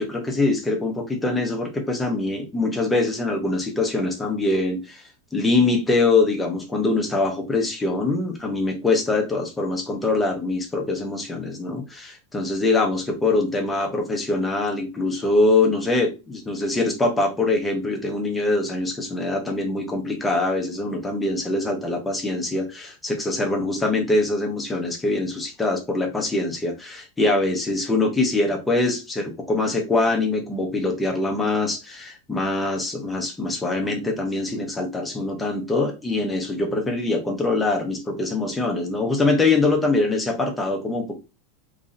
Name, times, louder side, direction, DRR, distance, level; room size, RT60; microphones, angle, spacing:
voice 1, 0.0-41.2, left 2 dB, 5° left, 1 dB, 0.7 m, -23 dB
3.0 x 2.6 x 3.8 m, 0.27 s
supercardioid pair, 180°, 0 cm